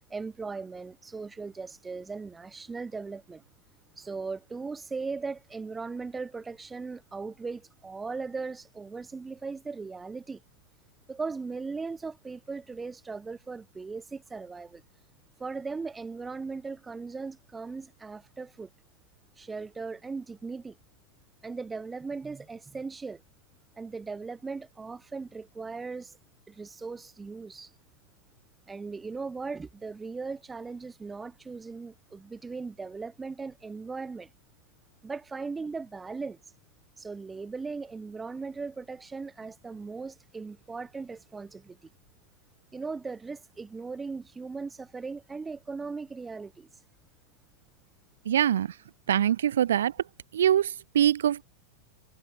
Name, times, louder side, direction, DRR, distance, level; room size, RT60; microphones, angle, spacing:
voice 1, 0.1-3.4 4.0-10.4 11.1-14.8 15.4-18.7 19.4-20.8 21.4-23.2 23.8-26.2 26.5-27.7 28.7-34.3 35.0-36.4 37.0-41.9 42.7-46.7, right 4 dB, 15° right, 0.7 m, -38 dB
voice 2, 48.3-48.7 49.1-49.9 50.3-51.4, right 10 dB, 65° right, 0.6 m, -23 dB
figure-of-eight pair, 90°, 0 cm